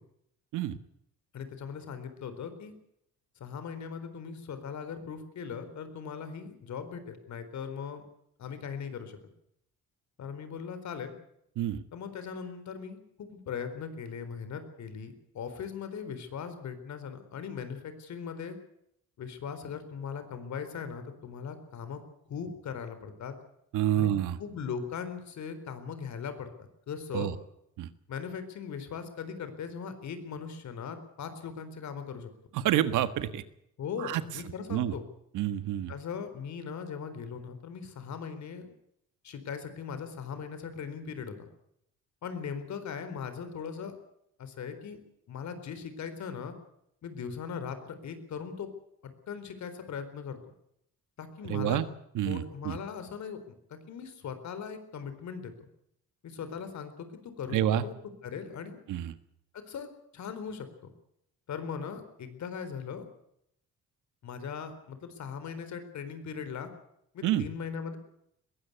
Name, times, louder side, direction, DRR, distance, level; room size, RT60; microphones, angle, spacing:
voice 1, 1.3-2.7 3.4-8.0 8.4-9.2 10.2-11.1 11.9-18.6 19.2-22.0 22.3-23.3 23.9-24.1 24.4-26.5 26.9-27.3 28.1-32.3 33.8-35.0 35.9-38.7 39.2-41.5 42.2-43.9 44.4-45.0 45.3-46.5 47.0-48.7 49.0-50.4 51.2-51.8 52.3-55.5 56.2-57.9 58.2-58.8 59.5-60.7 61.5-63.1 64.2-66.7 67.1-68.0, left 6 dB, 65° left, 10 dB, 4.1 m, -39 dB
voice 2, 23.7-24.4 27.1-27.3 27.8-27.9 32.5-33.4 34.0-34.2 34.7-34.9 35.3-35.9 51.5-51.9 52.1-52.8 57.5-57.9 58.9-59.1 67.2-67.5, right 11 dB, 90° right, 12 dB, 1.6 m, -28 dB
21.0 x 16.5 x 8.3 m, 0.75 s
cardioid pair, 90°, 30 cm